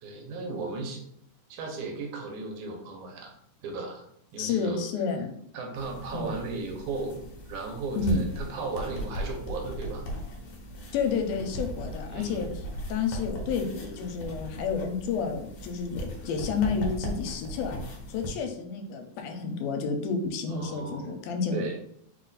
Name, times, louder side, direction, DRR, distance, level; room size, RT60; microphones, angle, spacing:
voice 1, 0.0-1.0 1.5-3.3 3.6-4.0 4.3-4.8 5.5-7.2 7.5-10.0 12.1-12.5 20.5-21.2 21.5-21.8, right 3 dB, 75° right, 2 dB, 2.2 m, -36 dB
voice 2, 4.4-5.4 6.1-6.4 8.0-8.2 10.9-12.5 12.9-17.7 18.1-21.8, left 5 dB, 85° left, 4 dB, 2.1 m, -30 dB
sound 1, 5.8-18.3, equal, 65° left, 1.5 m, -38 dB
4.8 x 2.4 x 3.9 m, 0.69 s
omnidirectional pair, 3.6 m